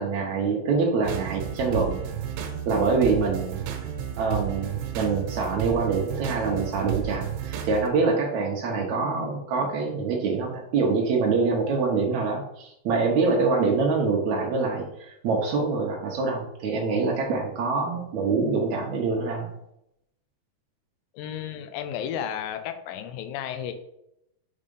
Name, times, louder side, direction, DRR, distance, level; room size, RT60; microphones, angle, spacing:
voice 1, 0.0-2.0 2.7-3.7 4.2-19.5, right 4 dB, 90° right, -1 dB, 1.5 m, -25 dB
sound 1, 1.0-7.9, right 9 dB, 75° right, 2.4 m, -32 dB
voice 2, 21.1-23.7, left 9 dB, 80° left, 8 dB, 2.1 m, -33 dB
6.6 x 3.7 x 5.3 m, 0.79 s
omnidirectional pair, 4.5 m